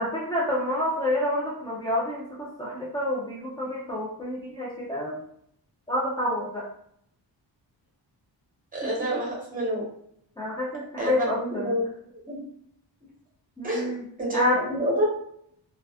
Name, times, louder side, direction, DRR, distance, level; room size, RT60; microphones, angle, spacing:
voice 1, 0.0-5.2 5.9-6.7 8.8-8.9 10.4-11.8 13.6-14.1 14.3-14.6, left 1 dB, 10° left, -6 dB, 0.4 m, -28 dB
voice 2, 8.7-9.8 11.0-11.8 12.2-12.4 13.6-13.9 14.2-15.0, right 1 dB, 20° right, -5 dB, 0.8 m, -28 dB
2.4 x 2.4 x 2.3 m, 0.70 s
wide cardioid pair, 165°, 43 cm